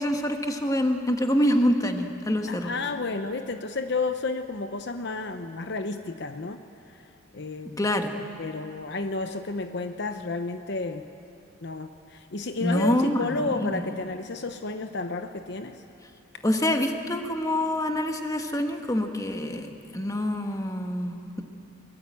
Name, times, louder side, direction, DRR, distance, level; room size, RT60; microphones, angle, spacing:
voice 1, 0.0-2.7 7.8-8.1 12.6-13.9 16.4-19.7 19.9-21.4, left 1 dB, 15° left, 5 dB, 1.3 m, -26 dB
voice 2, 2.5-6.6 7.3-7.8 8.4-11.1 11.6-15.8, left 3 dB, 55° left, 8 dB, 0.8 m, -31 dB
23.0 x 21.0 x 8.4 m, 2.7 s
head